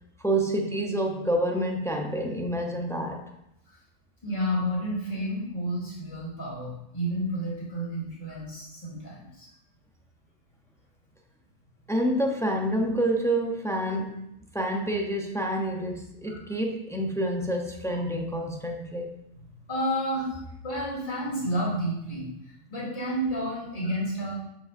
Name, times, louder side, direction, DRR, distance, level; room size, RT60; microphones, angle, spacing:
voice 1, 0.2-3.2 11.9-14.2 14.5-19.1, right 1 dB, 5° left, 2 dB, 0.3 m, -28 dB
voice 2, 4.2-9.5 16.3-16.4 19.7-20.3 20.6-24.3, equal, 30° left, -7 dB, 2.5 m, -31 dB
7.7 x 6.0 x 2.5 m, 0.81 s
omnidirectional pair, 1.3 m